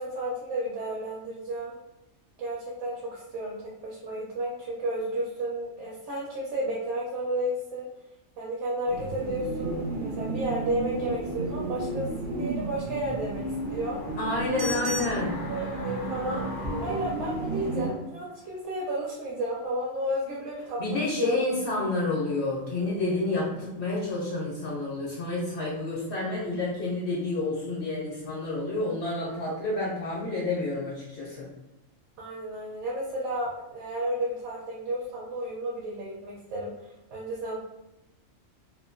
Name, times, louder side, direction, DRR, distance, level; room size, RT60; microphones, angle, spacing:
voice 1, 0.0-1.7 2.4-7.9 8.4-12.1 12.4-14.0 14.5-14.7 15.5-16.4 16.8-21.4 29.2-29.3 32.2-37.6, right 1 dB, 65° right, -3 dB, 0.9 m, -32 dB
sound 1, 8.9-17.9, right 2 dB, 90° right, 1.1 m, -33 dB
sound 2, 12.9-18.0 18.3-18.4, left 3 dB, 85° left, 0.4 m, -42 dB
voice 2, 14.2-15.4 20.8-31.5, left 2 dB, 65° left, -5 dB, 0.8 m, -29 dB
2.7 x 2.2 x 2.4 m, 0.92 s
omnidirectional pair, 1.3 m